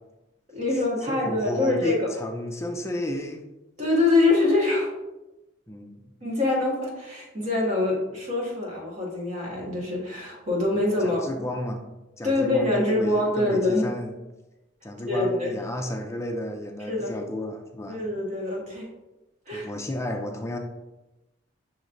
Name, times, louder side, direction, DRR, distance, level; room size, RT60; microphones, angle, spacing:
voice 1, 0.5-2.0 3.8-4.9 6.2-11.2 12.2-13.9 15.1-15.6 16.9-17.2 17.9-18.9 19.5-19.7, left 2 dB, 40° right, -3 dB, 1.4 m, -24 dB
voice 2, 1.1-3.4 5.7-6.0 11.0-11.8 12.2-14.1 14.8-18.0 19.5-20.6, left 1 dB, 15° left, 3 dB, 0.3 m, -32 dB
6.3 x 3.1 x 2.6 m, 1.0 s
head